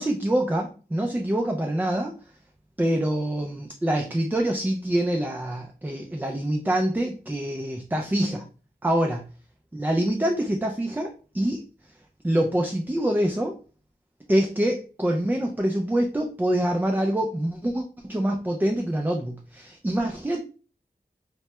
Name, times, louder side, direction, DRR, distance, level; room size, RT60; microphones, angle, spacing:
voice 1, 0.0-2.2 2.8-8.4 8.8-9.2 9.7-11.6 12.2-13.5 14.3-20.4, right 1 dB, 10° right, 3 dB, 0.3 m, -25 dB
2.1 x 2.1 x 2.8 m, 0.36 s
wide cardioid pair, 55°, 17 cm